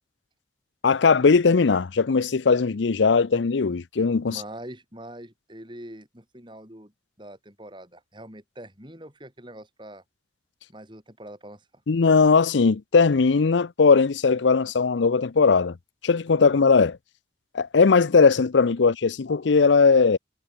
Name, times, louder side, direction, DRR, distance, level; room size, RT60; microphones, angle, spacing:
voice 1, 0.8-4.4 11.9-15.8 16.0-17.0 17.5-20.2, left 4 dB, 80° left, 0.6 m, -19 dB
voice 2, 4.3-6.9 7.2-10.0 10.7-11.7, right 1 dB, 25° right, 7.7 m, -43 dB
head